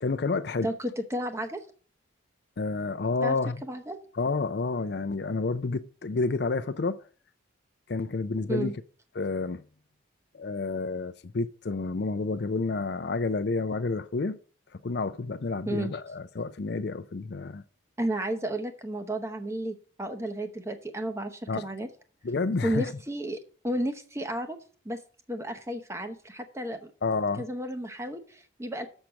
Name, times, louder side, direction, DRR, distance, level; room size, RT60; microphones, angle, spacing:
voice 1, 0.0-0.7 2.6-3.6 4.2-7.0 7.9-8.8 9.2-9.6 10.3-14.4 14.8-17.6 21.5-21.7 22.2-22.9 27.0-27.4, left 3 dB, 55° left, 0.5 m, -29 dB
voice 2, 0.6-1.6 3.2-3.3 3.6-4.0 8.5-8.7 15.7-15.9 18.0-21.9 22.6-23.4 23.6-24.6 24.8-25.0 25.3-26.9 27.4-28.9, right 1 dB, 15° right, 0.8 m, -32 dB
6.4 x 5.9 x 6.9 m
head